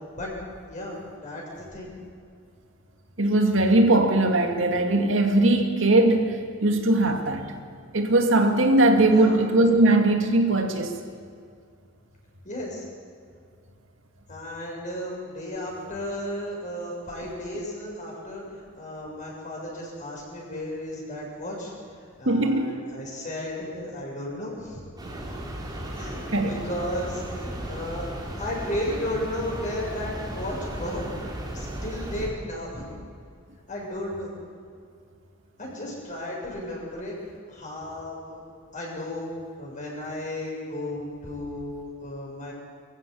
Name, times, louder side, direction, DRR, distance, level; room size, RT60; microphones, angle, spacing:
voice 1, 0.7-1.9 9.1-9.4 12.4-12.9 14.3-24.9 25.9-28.0 28.4-31.1 31.5-32.9 33.7-34.3 35.6-37.2 37.5-38.4 38.7-39.3 39.6-42.5, left 1 dB, 40° left, -3 dB, 7.4 m, -34 dB
voice 2, 3.2-7.5 7.9-10.9 22.3-22.8 26.3-26.6, right 2 dB, 65° right, 4 dB, 2.5 m, -20 dB
sound 1, 25.0-32.3, right 1 dB, 20° right, 4.1 m, -35 dB
24.0 x 15.0 x 8.5 m, 2.3 s
head